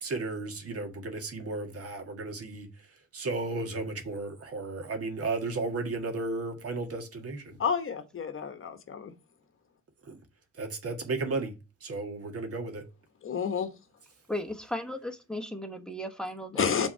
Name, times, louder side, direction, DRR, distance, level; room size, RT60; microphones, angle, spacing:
voice 1, 0.0-2.9 3.1-7.6 10.0-10.2 10.5-11.5 11.8-12.8, right 3 dB, 50° right, 1.6 m, -34 dB
voice 2, 7.6-9.1 13.2-13.7 16.5-16.9, left 6 dB, 45° left, 1.0 m, -30 dB
voice 3, 14.3-16.9, left 1 dB, 5° left, 1.0 m, -36 dB
5.9 x 3.6 x 5.5 m
cardioid pair, 90°, 30 cm